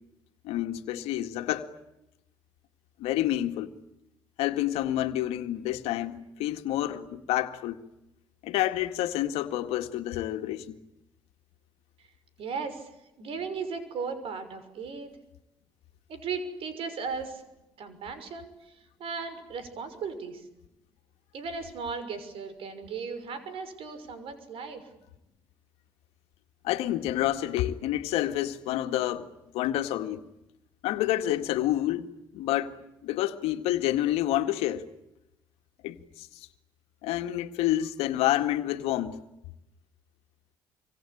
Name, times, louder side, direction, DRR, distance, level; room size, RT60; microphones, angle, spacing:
voice 1, 0.4-1.7 3.0-3.7 4.4-7.8 8.4-10.8 26.6-29.3 29.5-30.2 30.8-32.1 32.3-32.7 33.0-34.9 35.8-36.5 37.0-39.2, left 13 dB, 80° left, 1.9 m, -28 dB
voice 2, 12.4-12.9 13.2-15.1 16.1-17.4 17.8-18.5 19.0-20.4 21.3-24.8, right 5 dB, 65° right, 6.0 m, -36 dB
26.5 x 25.5 x 8.7 m
supercardioid pair, 65°, 10 cm